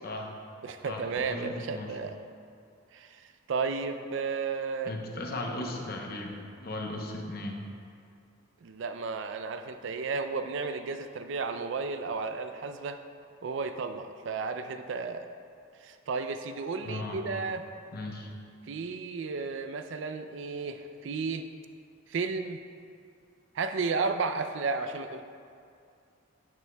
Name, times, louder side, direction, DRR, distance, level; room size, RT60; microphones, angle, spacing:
voice 1, 0.6-2.2 2.9-4.9 8.6-13.0 13.4-15.3 15.8-17.6 18.7-21.5 22.1-22.6 23.5-25.2, right 4 dB, 65° right, 8 dB, 0.4 m, -33 dB
voice 2, 1.3-1.9 4.9-7.6 16.8-17.5 17.9-18.3, left 1 dB, 50° left, 1 dB, 0.8 m, -37 dB
9.4 x 7.4 x 2.2 m, 2.4 s
head